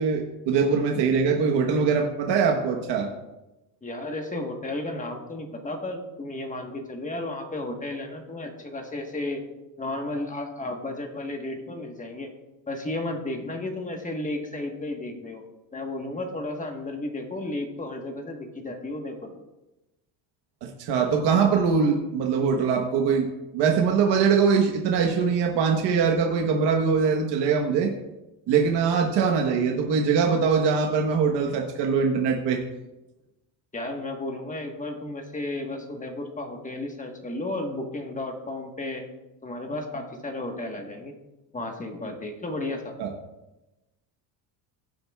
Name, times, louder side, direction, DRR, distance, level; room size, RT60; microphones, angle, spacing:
voice 1, 0.0-3.1 20.6-23.3 23.5-27.9 28.5-32.6 43.0-43.1, right 5 dB, 70° right, 1 dB, 1.2 m, -22 dB
voice 2, 3.8-9.4 9.8-12.3 12.7-15.4 15.7-19.3 33.7-39.1 39.4-41.1 41.5-42.9, left 2 dB, 20° left, 3 dB, 1.3 m, -33 dB
16.0 x 7.8 x 2.3 m, 1.0 s
cardioid pair, 135°, 43 cm